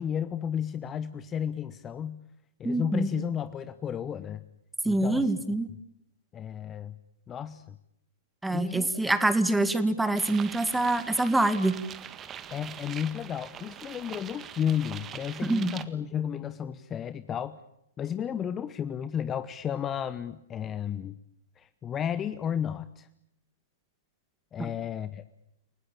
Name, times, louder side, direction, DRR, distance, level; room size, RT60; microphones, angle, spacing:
voice 1, 0.0-2.2 2.6-4.4 4.8-5.3 6.3-6.9 7.3-7.6 8.5-8.9 12.5-17.6 18.0-21.1 21.6-23.1 24.5-25.2, left 9 dB, 20° left, 14 dB, 1.0 m, -33 dB
voice 2, 2.6-3.1 4.9-5.7 8.4-11.8 15.4-15.7 24.6-24.7, right 2 dB, 5° right, 11 dB, 2.1 m, -25 dB
sound 1, 10.2-15.8, right 9 dB, 20° right, 1.7 m, -43 dB
29.5 x 18.5 x 8.7 m, 0.81 s
figure-of-eight pair, 115°, 0 cm